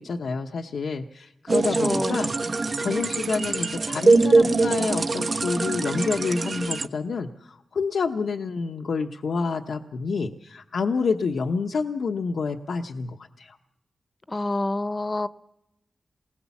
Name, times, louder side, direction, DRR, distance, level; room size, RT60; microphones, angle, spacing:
voice 1, 0.0-13.6, left 4 dB, 85° left, 0.9 m, -28 dB
voice 2, 1.5-2.3 14.3-15.3, left 2 dB, 30° left, 0.8 m, -28 dB
sound 1, 1.5-6.9, right 3 dB, 60° right, 1.2 m, -23 dB
28.0 x 20.0 x 7.1 m
cardioid pair, 55°, 0 cm